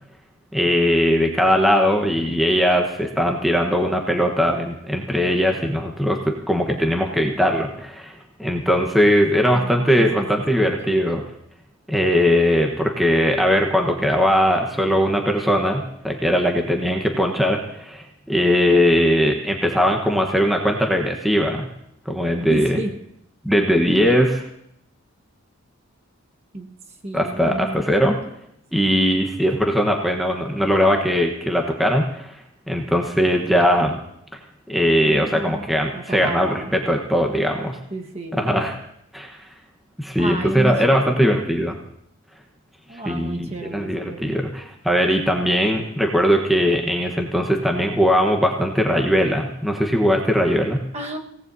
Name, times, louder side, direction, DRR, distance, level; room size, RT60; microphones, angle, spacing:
voice 1, 0.5-11.2 11.9-21.7 22.1-22.8 23.4-24.5 27.1-28.2 28.7-34.0 34.3-34.4 34.7-37.8 38.3-38.8 39.1-39.4 40.0-41.8 43.0-50.8, equal, ahead, 1 dB, 1.1 m, -20 dB
voice 2, 9.5-10.3 10.6-11.2 22.5-22.9 26.5-26.7 27.0-27.9 28.7-28.8 35.0-36.7 37.9-38.5 40.2-41.1 42.9-44.4 50.9-51.2, right 1 dB, 30° right, 2 dB, 1.4 m, -31 dB
26.0 x 17.5 x 2.8 m, 0.75 s
head